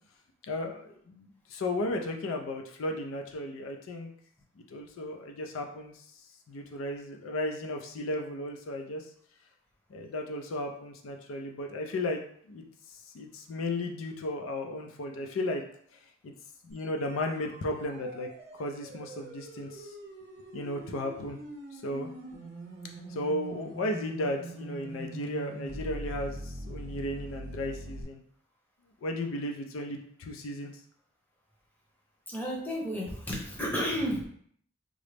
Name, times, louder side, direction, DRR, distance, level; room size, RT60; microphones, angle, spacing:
voice 1, 0.5-4.1 4.6-6.0 6.5-9.1 9.9-12.2 12.5-15.6 16.2-16.3 16.6-19.9 20.5-21.4 21.7-22.1 23.1-28.2 29.0-30.7, left 1 dB, 75° left, 3 dB, 0.4 m, -35 dB
sound 1, 16.7-28.0, right 1 dB, 50° right, 0.6 m, -43 dB
voice 2, 32.3-34.2, equal, 10° left, -4 dB, 0.7 m, -32 dB
3.6 x 2.0 x 3.3 m, 0.63 s
head